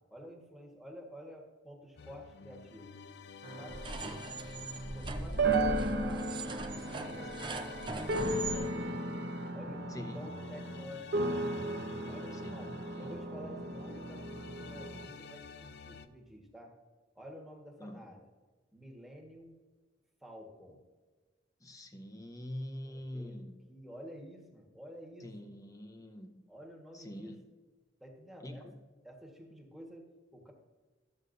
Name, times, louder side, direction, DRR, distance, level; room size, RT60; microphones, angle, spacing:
voice 1, 0.1-2.9 3.6-4.2 4.9-6.3 6.8-9.1 9.5-11.4 12.1-16.7 17.1-18.2 18.7-19.6 20.2-20.8 22.8-23.4 23.7-25.5 26.5-27.4 28.0-28.7 29.0-30.5, equal, ahead, 0 dB, 1.4 m, -50 dB
sound 1, 2.0-16.1, left 5 dB, 65° left, 0.4 m, -51 dB
sound 2, 3.4-15.1, right 2 dB, 60° right, 0.8 m, -36 dB
sound 3, 3.7-8.6, right 2 dB, 25° right, 0.6 m, -40 dB
voice 2, 9.9-10.3 12.4-13.2 17.8-18.1 21.6-23.7 25.2-26.5 26.9-27.5 28.4-28.8, left 1 dB, 20° left, 5 dB, 0.8 m, -45 dB
12.5 x 8.0 x 2.6 m, 1.3 s
head